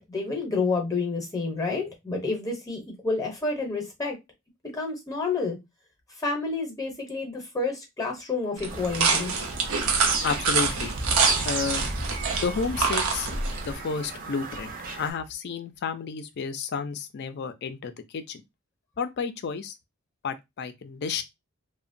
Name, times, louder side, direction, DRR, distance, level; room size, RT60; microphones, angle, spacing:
voice 1, 0.0-4.2 4.7-5.6 6.2-9.3, left 3 dB, 15° left, 0.6 m, -29 dB
sound 1, 8.6-13.7, right 5 dB, 80° right, 0.6 m, -26 dB
Bird vocalization bird call bird song, 8.7-15.1, right 3 dB, 40° right, 0.5 m, -34 dB
voice 2, 10.2-10.9 11.4-11.8 12.3-13.3 13.6-18.4 19.0-19.7 20.2-21.2, left 5 dB, 50° left, 0.4 m, -31 dB
2.8 x 2.1 x 2.5 m
head